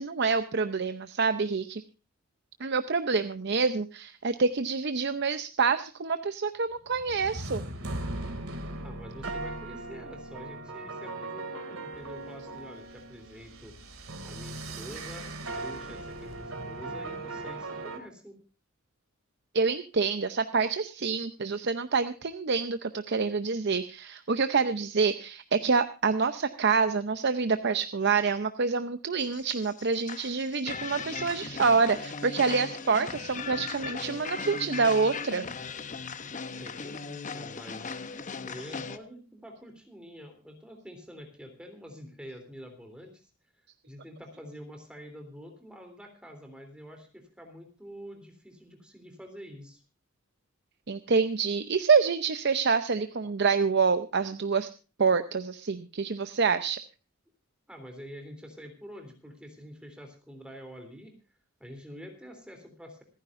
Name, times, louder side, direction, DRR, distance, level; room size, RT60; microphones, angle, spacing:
voice 1, 0.0-1.8 2.6-7.6 19.5-35.4 50.9-54.7 55.0-56.8, right 5 dB, 55° right, 10 dB, 0.7 m, -27 dB
sound 1, 6.9-18.0, right 2 dB, 90° right, 2.5 m, -38 dB
voice 2, 8.7-13.7 14.2-18.4 36.6-37.9 38.4-43.3 43.9-49.8 57.7-61.2 61.6-63.0, equal, 5° right, 4 dB, 3.3 m, -46 dB
sound 2, 29.2-39.0, left 5 dB, 40° left, 0.8 m, -38 dB
26.5 x 9.9 x 2.6 m, 0.34 s
head